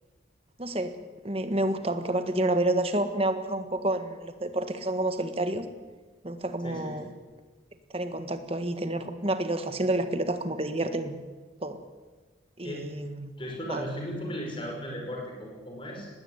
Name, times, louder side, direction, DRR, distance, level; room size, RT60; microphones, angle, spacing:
voice 1, 0.6-0.9 1.2-5.7 6.2-7.1 7.9-11.2 11.6-11.8 12.6-13.3 13.7-13.9, right 1 dB, 30° right, 9 dB, 1.6 m, -29 dB
voice 2, 6.6-7.0 12.6-16.1, equal, 25° left, 0 dB, 5.4 m, -37 dB
20.0 x 17.0 x 9.5 m, 1.3 s
head